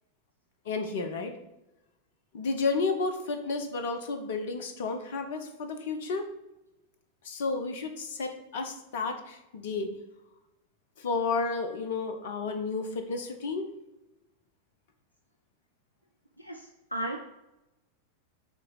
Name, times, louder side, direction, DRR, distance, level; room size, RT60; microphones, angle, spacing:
voice 1, 0.7-1.4 2.3-6.3 7.2-9.9 11.0-13.7, left 4 dB, 55° left, 7 dB, 0.8 m, -32 dB
voice 2, 16.4-17.2, right 1 dB, 85° left, 3 dB, 0.5 m, -35 dB
7.5 x 3.0 x 4.8 m, 0.94 s
figure-of-eight pair, 90°, 0 cm